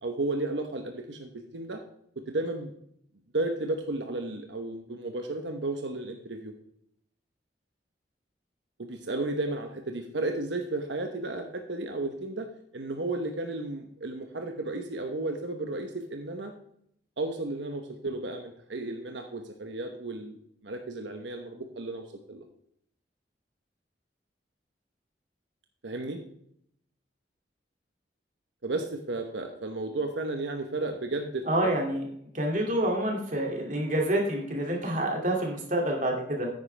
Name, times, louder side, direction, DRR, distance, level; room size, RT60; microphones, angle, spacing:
voice 1, 0.0-1.8 2.3-2.7 3.3-6.5 8.8-12.5 12.7-16.5 17.2-20.4 20.6-22.0 22.3-22.4 25.8-26.2 28.6-31.4 32.7-32.9, right 2 dB, 90° right, 4 dB, 1.1 m, -33 dB
voice 2, 31.5-32.0 32.3-36.5, right 1 dB, 45° right, 1 dB, 2.5 m, -27 dB
9.8 x 9.4 x 3.4 m, 0.70 s
head